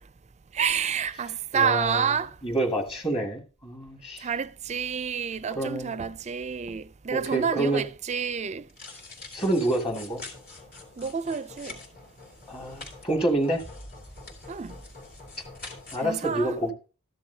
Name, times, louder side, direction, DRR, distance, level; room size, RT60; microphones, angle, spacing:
voice 1, 0.5-2.4 4.2-8.7 11.0-11.8 14.5-14.8 16.0-16.6, right 7 dB, 30° right, 0.4 m, -29 dB
voice 2, 1.5-2.1 2.4-4.3 5.5-5.9 7.1-7.8 9.3-10.2 12.5-13.6 15.9-16.7, right 1 dB, 25° left, 2.2 m, -27 dB
sound 1, 8.7-16.0, left 3 dB, 45° left, 3.0 m, -45 dB
13.5 x 10.5 x 2.8 m
head